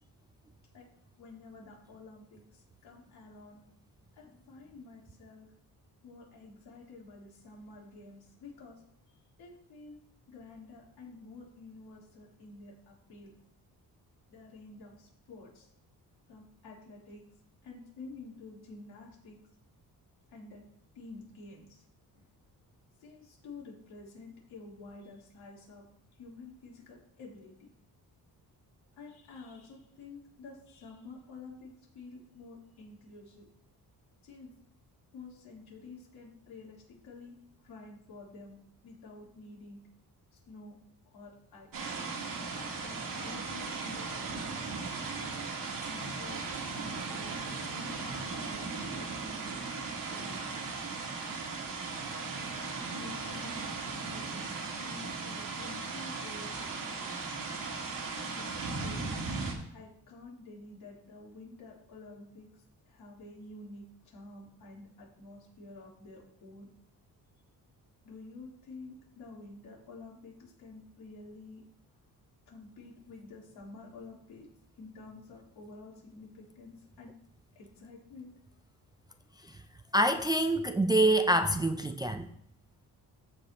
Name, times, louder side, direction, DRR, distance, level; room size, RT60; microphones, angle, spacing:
voice 1, 1.2-3.6 4.2-5.5 6.0-8.8 9.4-10.0 10.3-13.3 14.3-15.7 16.3-17.2 17.6-19.4 20.3-20.6 20.9-21.8 22.1-22.2 23.0-25.8 26.2-27.7 29.0-33.5 34.2-34.5 35.1-37.3 37.6-38.6 38.8-39.8 40.3-40.8 41.1-41.9 42.8-44.4 45.9-49.6 50.1-50.6 52.9-57.2 58.3-59.0 59.7-66.7 68.0-71.6 72.5-74.5 74.8-77.1 77.6-78.3, left 3 dB, 80° left, 3.5 m, -50 dB
sound 1, 41.7-59.5, right 4 dB, 60° right, 1.8 m, -37 dB
voice 2, 79.9-82.3, right 1 dB, 10° right, 0.3 m, -26 dB
15.0 x 5.4 x 2.9 m
cardioid pair, 115°, 38 cm